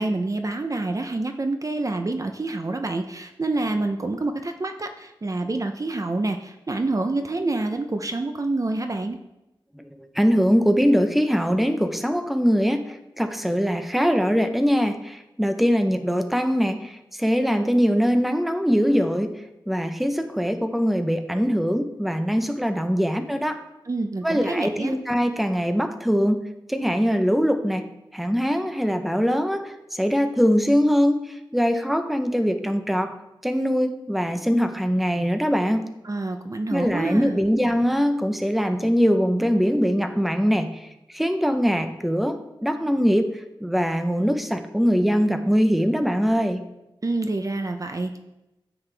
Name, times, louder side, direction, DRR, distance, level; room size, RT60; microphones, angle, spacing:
voice 1, 0.0-9.2 23.9-24.9 36.0-37.4 47.0-48.2, right 2 dB, 40° right, 6 dB, 0.6 m, -27 dB
voice 2, 10.2-16.9 17.2-19.3 19.7-23.6 24.2-26.4 26.7-27.8 28.1-33.1 33.4-35.9 36.7-40.7 41.1-43.3 43.6-46.6, equal, ahead, 7 dB, 0.8 m, -22 dB
9.8 x 7.9 x 3.4 m, 0.93 s
wide cardioid pair, 90°, 9 cm